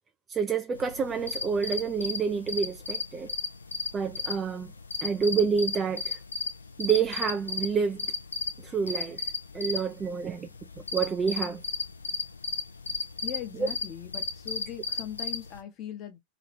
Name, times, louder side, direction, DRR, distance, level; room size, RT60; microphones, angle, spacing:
voice 1, 0.3-3.3 3.9-4.7 5.0-6.2 6.8-8.1 8.6-9.2 9.5-10.5 10.9-11.6, right 6 dB, 20° right, 0.4 m, -28 dB
sound 1, 0.8-15.6, left 3 dB, 75° left, 0.5 m, -35 dB
voice 2, 13.2-16.2, left 10 dB, 35° left, 0.9 m, -40 dB
2.9 x 2.8 x 3.1 m
figure-of-eight pair, 90°, 0 cm